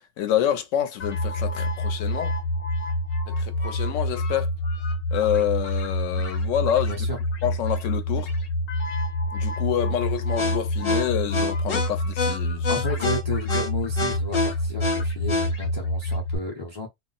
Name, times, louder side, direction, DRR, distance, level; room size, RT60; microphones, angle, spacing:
voice 1, 0.2-2.3 3.3-4.5 5.1-7.0 7.4-8.3 9.3-12.7, left 10 dB, 80° left, 1.0 m, -27 dB
sound 1, 1.0-16.4, left 1 dB, 55° left, 1.0 m, -26 dB
voice 2, 6.9-7.2 12.7-16.9, left 3 dB, 30° left, 0.5 m, -33 dB
2.4 x 2.0 x 3.9 m
omnidirectional pair, 1.3 m